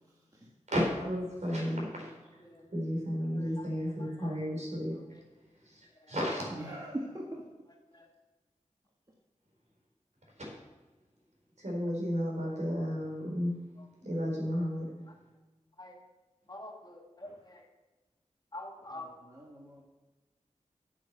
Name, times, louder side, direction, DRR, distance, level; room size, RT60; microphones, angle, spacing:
voice 1, 0.7-2.1 2.7-5.0 5.7-5.8 6.1-6.4 11.6-13.6 14.0-14.9, equal, 65° right, -2 dB, 4.2 m, -32 dB
voice 2, 6.5-7.4 18.9-19.8, right 1 dB, 30° right, -2 dB, 1.6 m, -41 dB
voice 3, 16.5-17.5 18.5-19.1, left 1 dB, 35° left, 2 dB, 1.6 m, -45 dB
9.2 x 7.5 x 6.8 m, 1.2 s
wide cardioid pair, 55°, 13 cm